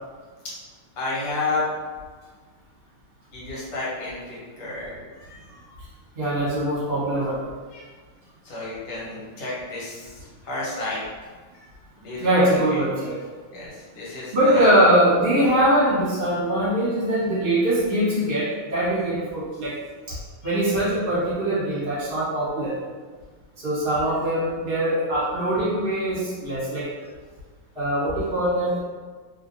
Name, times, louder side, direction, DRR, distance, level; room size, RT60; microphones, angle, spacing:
voice 1, 1.0-1.7 3.3-5.8 7.7-7.9 8.4-11.0 11.5-11.7 12.0-12.8 13.5-14.6 20.4-20.6, left 3 dB, 70° left, -7 dB, 1.6 m, -31 dB
voice 2, 6.1-7.4 12.2-13.2 14.3-19.8 20.1-20.2 20.4-22.7 23.6-26.9 27.7-28.8, right 1 dB, 35° right, -9 dB, 1.4 m, -22 dB
3.1 x 2.5 x 2.6 m, 1.5 s
omnidirectional pair, 2.0 m